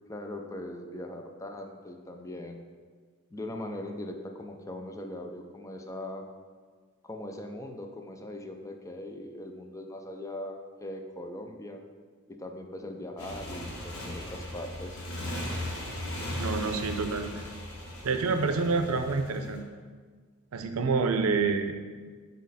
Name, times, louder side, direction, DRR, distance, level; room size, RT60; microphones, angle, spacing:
voice 1, 0.0-2.6 3.3-6.3 7.0-11.8 12.3-15.0, left 1 dB, 15° left, 4 dB, 0.4 m, -40 dB
Motorcycle, 13.2-19.6, left 1 dB, 85° left, 1.3 m, -37 dB
voice 2, 16.3-17.3 18.0-19.7 20.5-21.7, right 4 dB, 80° right, 7 dB, 0.5 m, -27 dB
6.2 x 4.1 x 4.1 m, 1.5 s
head